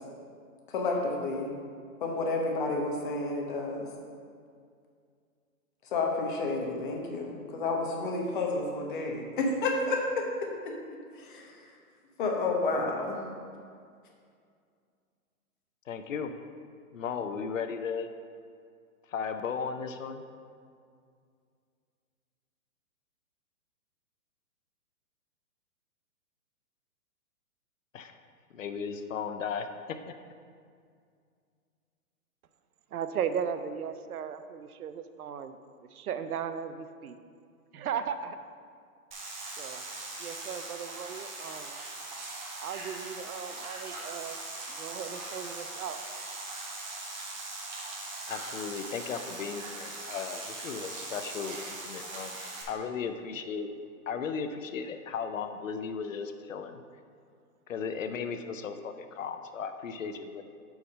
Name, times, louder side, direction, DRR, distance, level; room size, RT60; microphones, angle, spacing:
voice 1, 0.7-1.5 2.0-3.8 5.9-10.2 11.2-11.5 12.2-13.2, left 3 dB, 35° left, 0 dB, 1.0 m, -30 dB
voice 2, 15.9-16.3 16.9-18.1 19.1-20.2 27.9-28.2 28.5-29.7 48.3-52.4 52.7-53.7 54.1-56.8 57.7-60.4, left 6 dB, 60° left, 8 dB, 0.6 m, -36 dB
voice 3, 32.9-35.6 35.9-37.2 37.7-38.4 39.6-39.8 40.2-41.8 42.6-44.4 44.7-46.0, right 7 dB, 80° right, 10 dB, 0.7 m, -36 dB
sound 1, 39.1-52.6, right 2 dB, 30° right, 1.1 m, -40 dB
6.7 x 4.8 x 5.3 m, 2.2 s
hypercardioid pair, 165°, 44 cm